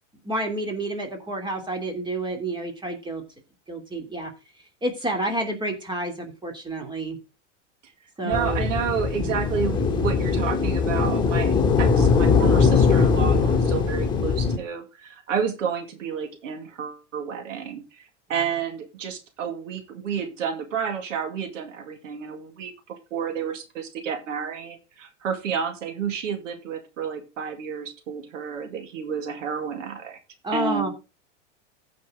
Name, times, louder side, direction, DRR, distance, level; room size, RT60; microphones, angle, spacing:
voice 1, 0.2-3.2 3.7-4.3 4.6-7.2 8.2-8.7 9.1-9.6 30.4-30.9, right 1 dB, 10° right, 3 dB, 3.0 m, -29 dB
voice 2, 8.2-18.0 18.3-30.2 30.5-30.9, right 7 dB, 85° right, 6 dB, 2.2 m, -30 dB
sound 1, 8.3-14.6, left 5 dB, 10° left, 3.1 m, -21 dB
15.0 x 5.9 x 3.8 m, 0.29 s
supercardioid pair, 115°, 37 cm